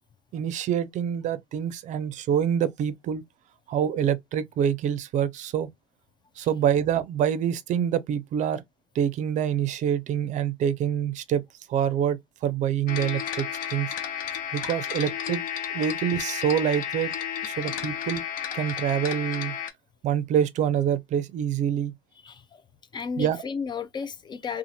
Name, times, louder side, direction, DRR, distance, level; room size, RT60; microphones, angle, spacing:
voice 1, 0.3-3.2 3.7-5.7 6.4-8.6 8.9-11.4 11.7-13.9 14.5-15.4 15.7-17.1 17.4-18.2 18.5-19.6 20.0-21.9 23.2-23.4, right 9 dB, 50° right, 0.5 m, -26 dB
sound 1, 12.9-19.7, left 9 dB, 60° left, 0.7 m, -32 dB
voice 2, 22.2-22.6 22.9-24.6, left 6 dB, 30° left, 0.4 m, -33 dB
2.6 x 2.4 x 2.7 m
supercardioid pair, 90°, 16 cm